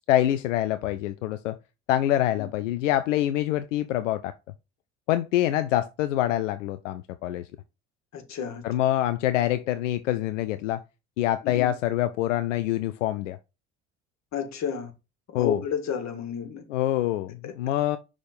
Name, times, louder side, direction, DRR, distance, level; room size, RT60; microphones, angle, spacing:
voice 1, 0.1-1.6 1.9-4.3 5.1-7.5 8.6-10.8 11.2-13.4 15.3-15.6 16.7-18.0, left 13 dB, 80° left, 0.5 m, -25 dB
voice 2, 8.1-8.6 11.4-11.7 14.3-14.9 15.3-16.6 17.4-17.5, left 7 dB, 45° left, 1.8 m, -31 dB
5.9 x 3.7 x 5.0 m
hypercardioid pair, 65°, 37 cm